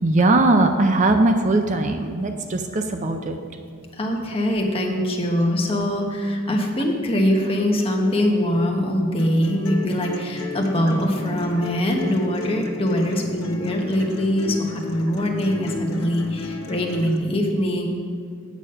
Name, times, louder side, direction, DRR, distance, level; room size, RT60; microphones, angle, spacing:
voice 1, 0.0-3.4, right 2 dB, 35° right, 6 dB, 0.5 m, -19 dB
voice 2, 4.0-17.9, equal, 25° left, 1 dB, 1.1 m, -22 dB
sound 1, 9.2-17.2, left 2 dB, 85° left, 1.1 m, -34 dB
8.3 x 7.1 x 5.5 m, 2.3 s
head